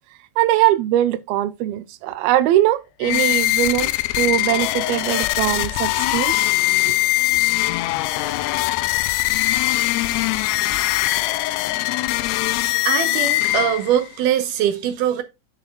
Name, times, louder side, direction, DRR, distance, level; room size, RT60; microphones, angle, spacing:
voice 1, 0.4-3.9 4.2-6.5 6.9-7.0, right 13 dB, 90° right, 2.5 m, -21 dB
sound 1, 3.0-14.1, left 18 dB, 90° left, 2.5 m, -21 dB
voice 2, 12.9-15.2, right 10 dB, 70° right, 2.2 m, -21 dB
9.4 x 7.3 x 2.2 m
omnidirectional pair, 4.3 m